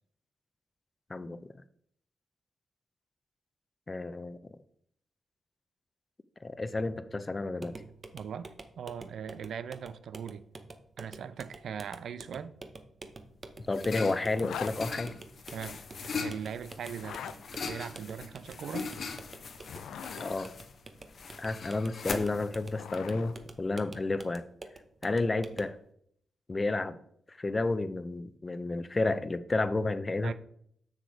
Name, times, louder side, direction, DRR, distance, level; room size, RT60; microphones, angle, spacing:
voice 1, 3.9-4.4 6.4-7.7 13.7-15.2 20.2-20.5 21.4-24.4 25.0-25.8 26.5-27.0 27.3-30.3, left 3 dB, 35° left, 0.7 m, -31 dB
sound 1, 7.6-25.8, right 3 dB, 45° right, 0.9 m, -49 dB
voice 2, 8.1-10.4 11.0-12.5 15.5-15.8 16.2-17.2 17.6-18.9 30.2-30.3, right 8 dB, 75° right, 0.4 m, -40 dB
sound 2, 13.1-23.7, left 4 dB, 65° left, 0.9 m, -41 dB
Zipper (clothing), 14.3-14.8 16.9-17.4 19.5-20.4 22.2-23.3, left 8 dB, 80° left, 0.4 m, -41 dB
6.6 x 6.5 x 4.7 m
supercardioid pair, 45°, 0 cm